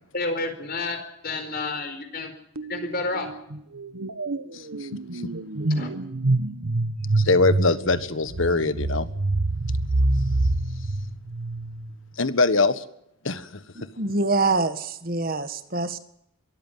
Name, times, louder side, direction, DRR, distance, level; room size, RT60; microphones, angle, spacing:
voice 1, 0.1-1.0 1.2-2.3 2.7-3.3 5.7-5.9, left 3 dB, 45° left, 7 dB, 4.5 m, -29 dB
sound 1, 2.6-2.9 3.1-11.9, right 2 dB, 90° right, 1.3 m, -26 dB
voice 2, 4.5-4.9 5.1-5.3 7.1-9.1 12.2-12.8 13.2-13.6, left 3 dB, 70° left, 13 dB, 1.5 m, -23 dB
voice 3, 13.8-16.0, right 3 dB, 45° right, 10 dB, 1.8 m, -25 dB
23.0 x 14.0 x 9.4 m, 0.77 s
head